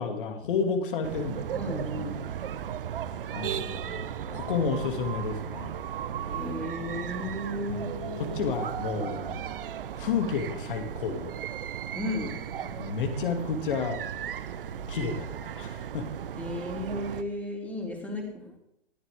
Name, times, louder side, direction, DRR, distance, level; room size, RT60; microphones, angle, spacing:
voice 1, 0.0-1.9 3.3-5.7 7.7-9.4 10.0-11.3 12.6-14.0 14.9-16.1, left 5 dB, 55° left, 6 dB, 2.8 m, -31 dB
sound 1, 1.0-17.2, right 9 dB, 55° right, 1.1 m, -36 dB
voice 2, 1.5-2.3 6.3-8.4 9.0-9.2 11.9-12.4 16.4-18.5, left 1 dB, 5° left, 1 dB, 3.6 m, -35 dB
20.0 x 14.5 x 3.8 m, 0.74 s
figure-of-eight pair, 115°, 32 cm